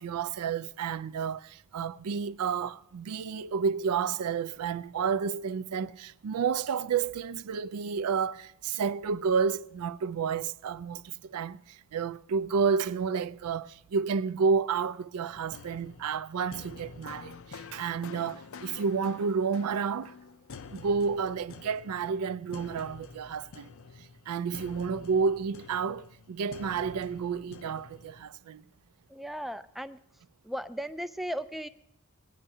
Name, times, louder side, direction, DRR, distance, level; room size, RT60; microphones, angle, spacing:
voice 1, 0.0-11.6 11.9-20.1 20.7-23.7 24.3-28.6, right 6 dB, 85° right, 0.4 m, -30 dB
sound 1, 15.3-28.2, left 5 dB, 65° left, 0.5 m, -48 dB
voice 2, 29.1-30.0 30.5-31.7, equal, ahead, 0.3 m, -36 dB
19.0 x 9.8 x 2.7 m
head